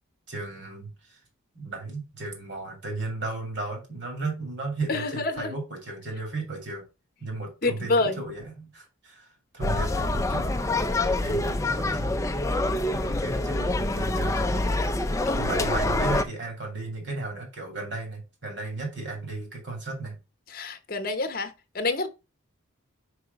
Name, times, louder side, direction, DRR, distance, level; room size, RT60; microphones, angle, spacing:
voice 1, 0.3-1.2 1.5-6.8 7.2-9.3 9.5-10.6 11.2-12.2 12.8-14.7 15.4-20.1, right 3 dB, 55° right, 2.7 m, -35 dB
voice 2, 4.9-5.5 7.6-8.2 15.3-15.4 20.5-22.1, left 3 dB, 45° left, 0.9 m, -27 dB
sound 1, 9.6-16.2, left 2 dB, 15° left, 0.4 m, -26 dB
4.9 x 4.8 x 5.3 m
head